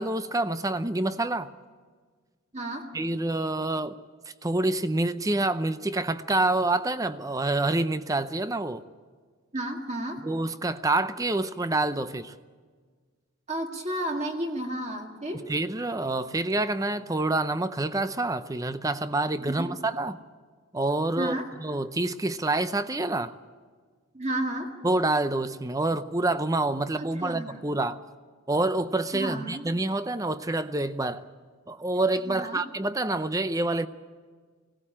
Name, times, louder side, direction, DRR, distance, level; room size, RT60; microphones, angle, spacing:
voice 1, 0.0-1.5 2.9-4.0 4.4-8.8 10.2-12.3 15.5-20.2 20.7-23.3 24.8-28.0 28.5-31.2 31.7-33.9, right 2 dB, 15° right, 0.6 m, -27 dB
voice 2, 2.5-2.9 9.5-10.2 13.5-15.5 19.4-19.8 21.2-21.5 24.1-24.7 27.0-27.6 29.1-29.7 32.3-32.6, right 1 dB, 30° right, 2.0 m, -32 dB
20.0 x 17.5 x 8.7 m
head